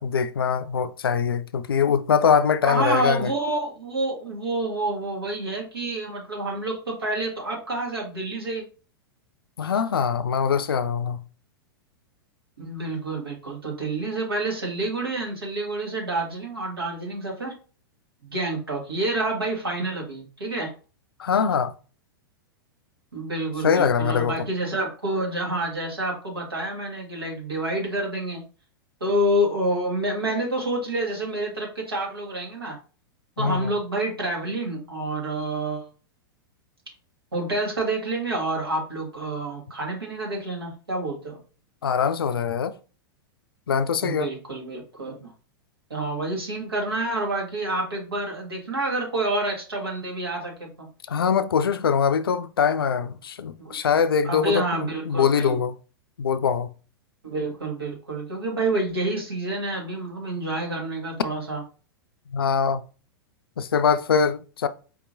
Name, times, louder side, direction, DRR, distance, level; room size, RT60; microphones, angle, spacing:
voice 1, 0.0-3.3 9.6-11.2 21.2-21.7 23.6-24.3 33.4-33.7 41.8-42.7 43.7-44.3 51.1-55.7 56.2-56.7 62.3-62.8 63.6-64.7, left 6 dB, 75° left, 0.4 m, -23 dB
voice 2, 2.6-8.6 12.6-17.6 18.2-20.7 23.1-28.4 29.0-32.8 33.4-35.9 37.3-41.4 44.0-45.3 45.9-50.7 53.6-53.8 54.2-55.6 57.2-61.6, right 2 dB, 85° right, 1.6 m, -28 dB
4.5 x 2.9 x 2.6 m
figure-of-eight pair, 100°, 12 cm